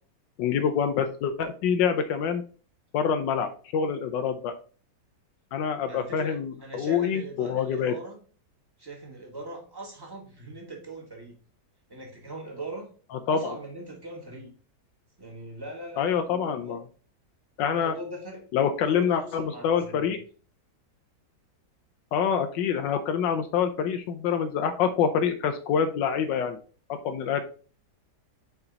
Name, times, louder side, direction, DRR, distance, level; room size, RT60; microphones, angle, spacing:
voice 1, 0.4-2.4 2.9-4.5 5.5-7.9 13.3-13.4 16.0-16.8 17.6-17.9 18.5-20.2 22.1-26.6 26.9-27.4, left 7 dB, 90° left, 7 dB, 1.3 m, -26 dB
voice 2, 5.9-8.2 8.8-11.3 11.9-12.9 13.3-14.5 15.2-16.8 17.6-18.4 18.9-20.1, right 1 dB, 15° right, -1 dB, 1.6 m, -41 dB
5.9 x 4.4 x 4.0 m, 0.40 s
omnidirectional pair, 1.9 m